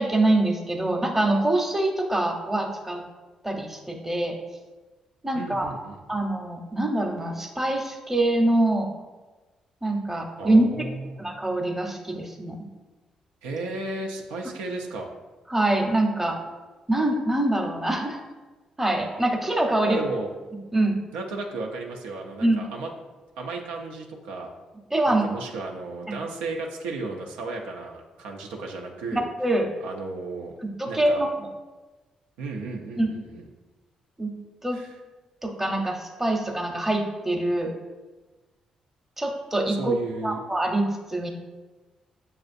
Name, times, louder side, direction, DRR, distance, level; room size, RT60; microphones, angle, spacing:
voice 1, 0.0-3.0 3.4-4.4 5.2-5.7 6.1-8.9 9.8-10.9 11.2-12.6 15.5-16.4 16.9-18.2 18.8-20.0 20.7-21.0 22.4-22.6 24.9-25.2 26.1-26.2 29.1-29.7 30.6-31.3 33.0-33.1 34.2-34.3 34.6-34.8 35.4-37.7 39.2-40.0 40.2-41.3, right 1 dB, 15° right, 2 dB, 0.8 m, -24 dB
voice 2, 5.3-6.2 10.4-11.2 13.4-15.1 19.8-20.3 21.1-22.9 23.4-24.5 25.1-29.3 29.8-30.5 30.9-31.2 32.4-33.4 34.7-34.9 39.7-40.4, right 3 dB, 90° right, 1 dB, 0.5 m, -34 dB
6.4 x 2.4 x 2.5 m, 1.2 s
supercardioid pair, 55°, 2 cm